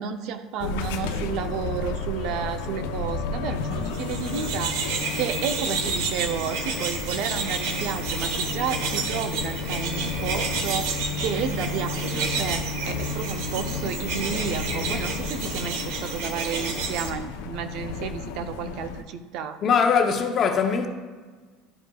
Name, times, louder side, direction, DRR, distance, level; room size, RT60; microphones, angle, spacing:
voice 1, 0.0-19.6, right 7 dB, 60° right, 0.6 m, -32 dB
sound 1, 0.6-19.0, left 4 dB, 90° left, 0.6 m, -32 dB
sound 2, 3.8-17.1, right 4 dB, 75° right, 0.9 m, -30 dB
voice 2, 19.6-20.9, left 6 dB, 35° left, 0.7 m, -21 dB
11.5 x 5.1 x 2.3 m
supercardioid pair, 135°, 0 cm